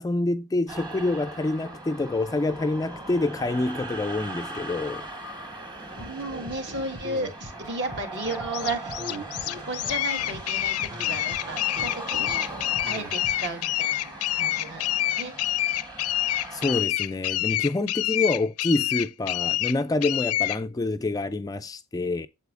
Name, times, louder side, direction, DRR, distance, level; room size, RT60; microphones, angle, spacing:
voice 1, 0.0-5.1 16.5-22.3, left 2 dB, 15° left, 0.3 m, -27 dB
sound 1, 0.7-16.8, right 2 dB, 20° right, 1.3 m, -39 dB
voice 2, 6.0-8.9 9.5-12.5 12.9-15.6, right 2 dB, 55° right, 1.6 m, -34 dB
sound 2, 6.0-13.5, equal, 75° right, 2.5 m, -41 dB
sound 3, 8.2-20.6, left 14 dB, 80° left, 0.5 m, -27 dB
8.0 x 7.4 x 2.5 m
head